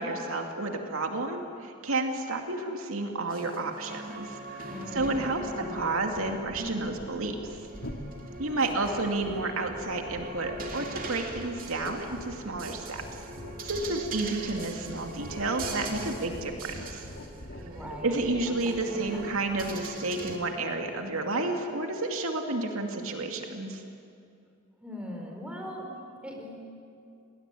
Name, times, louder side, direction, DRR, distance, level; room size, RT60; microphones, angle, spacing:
voice 1, 0.0-7.6 8.4-13.0 13.6-17.0 18.0-23.8, right 2 dB, 75° right, 3 dB, 2.5 m, -31 dB
sound 1, 3.3-20.4, right 2 dB, 45° right, 2.6 m, -42 dB
voice 2, 4.6-6.0 8.6-9.0 17.5-19.3 24.8-26.7, equal, 5° right, 1 dB, 4.7 m, -42 dB
sound 2, 4.9-21.4, left 1 dB, 60° left, 2.8 m, -44 dB
29.5 x 20.5 x 9.9 m, 2.5 s
head